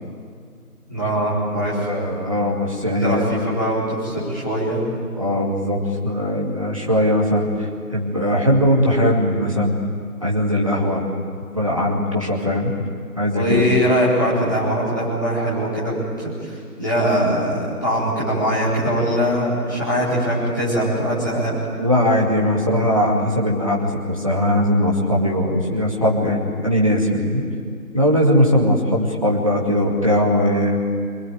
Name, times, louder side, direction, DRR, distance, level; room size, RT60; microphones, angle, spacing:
voice 1, 0.9-1.9 2.8-4.8 13.3-21.6, equal, 15° left, -11 dB, 4.3 m, -22 dB
voice 2, 1.5-3.2 5.2-9.8 10.2-11.0 11.5-12.7 13.2-13.6 21.8-27.4 27.9-30.8, equal, 20° right, -2 dB, 2.3 m, -20 dB
26.0 x 20.5 x 9.4 m, 2.2 s
figure-of-eight pair, 175°, 45 cm